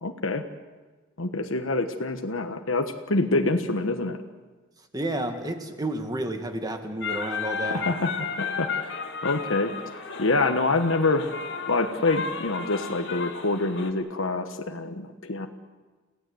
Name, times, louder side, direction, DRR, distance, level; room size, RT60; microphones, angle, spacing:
voice 1, 0.0-0.4 1.2-4.2 7.6-8.9 9.2-9.7 10.2-11.3 11.7-15.5, left 2 dB, 80° left, 6 dB, 1.3 m, -26 dB
voice 2, 4.9-7.8, right 1 dB, 20° right, 5 dB, 2.0 m, -31 dB
sound 1, 7.0-13.9, left 5 dB, 60° left, 2.5 m, -33 dB
29.0 x 17.0 x 7.9 m, 1.3 s
head